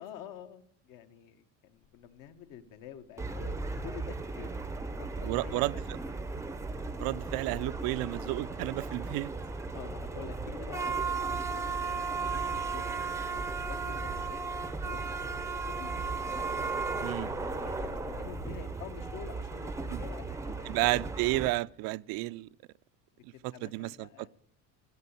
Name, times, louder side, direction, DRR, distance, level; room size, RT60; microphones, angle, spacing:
voice 1, 0.0-5.8 6.8-7.1 7.8-7.9 9.7-14.4 14.8-15.9 16.4-21.1 23.1-24.3, left 9 dB, 70° left, 1.5 m, -48 dB
sound 1, 1.8-2.1 2.4-18.5, left 8 dB, 85° left, 3.7 m, -52 dB
sound 2, 3.2-21.5, right 4 dB, 10° right, 0.6 m, -35 dB
voice 2, 5.2-5.7 7.0-9.3 17.0-17.3 19.9-20.0 20.7-22.5 23.2-24.1, right 20 dB, 80° right, 0.5 m, -31 dB
15.5 x 8.3 x 9.7 m
cardioid pair, 155°, 35 cm